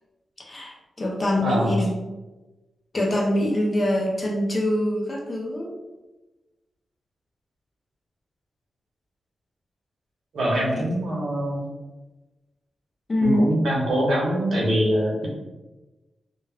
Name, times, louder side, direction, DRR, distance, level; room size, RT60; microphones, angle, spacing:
voice 1, 0.4-2.1 2.9-5.8 10.5-10.8 13.1-13.5, left 1 dB, 30° left, -2 dB, 0.5 m, -24 dB
voice 2, 1.4-1.8 10.3-11.6 13.2-15.3, equal, 85° right, -4 dB, 0.8 m, -23 dB
2.2 x 2.2 x 3.4 m, 1.1 s
wide cardioid pair, 160°, 0 cm